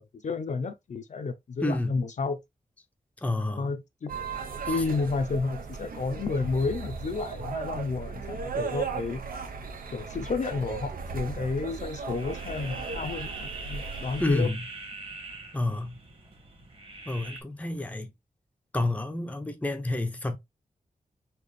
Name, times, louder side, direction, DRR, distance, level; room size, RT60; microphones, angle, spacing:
voice 1, 0.0-2.4 3.5-4.1 4.7-9.2 9.9-14.5, left 4 dB, 55° left, 0.6 m, -31 dB
voice 2, 1.6-2.0 3.2-3.7 4.7-4.8 14.2-14.7 15.5-16.0 17.1-18.1 18.7-20.4, left 2 dB, 10° left, 0.6 m, -29 dB
sound 1, 4.1-14.5, right 5 dB, 85° right, 0.9 m, -36 dB
sound 2, 12.1-17.4, right 3 dB, 40° right, 1.5 m, -42 dB
4.2 x 2.9 x 3.2 m
wide cardioid pair, 140°, 15 cm